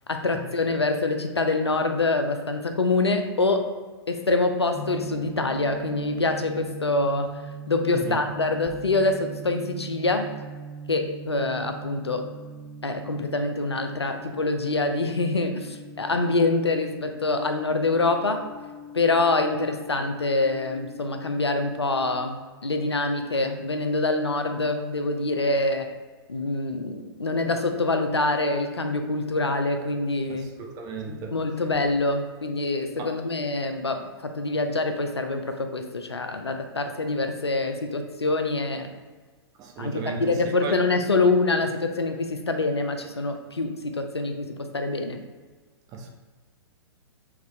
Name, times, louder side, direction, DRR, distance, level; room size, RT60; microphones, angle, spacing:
voice 1, 0.1-3.7 4.1-7.4 7.7-10.3 10.9-12.3 12.8-18.4 18.9-25.9 26.3-30.5 31.1-38.9 39.8-45.2, left 2 dB, 90° left, 6 dB, 0.4 m, -25 dB
sound 1, 4.7-22.3, right 3 dB, 10° left, 1.0 m, -41 dB
voice 2, 30.3-31.3 33.0-33.1 39.6-40.7 45.9-46.1, right 4 dB, 25° right, 2 dB, 0.6 m, -35 dB
3.6 x 3.1 x 3.2 m, 1.4 s
figure-of-eight pair, 110°, 13 cm